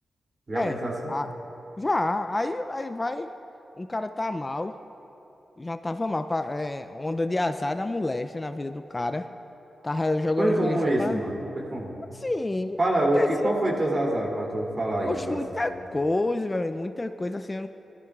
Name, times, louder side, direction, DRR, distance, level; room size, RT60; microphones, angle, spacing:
voice 1, 0.5-1.1 10.4-11.9 12.8-15.6, right 1 dB, 45° right, -2 dB, 2.8 m, -26 dB
voice 2, 1.8-3.3 3.8-4.8 5.6-9.3 9.8-11.2 12.1-12.8 13.1-13.6 15.1-17.7, left 2 dB, 30° left, 9 dB, 0.4 m, -28 dB
17.5 x 13.0 x 2.4 m, 2.9 s
supercardioid pair, 40°, 0 cm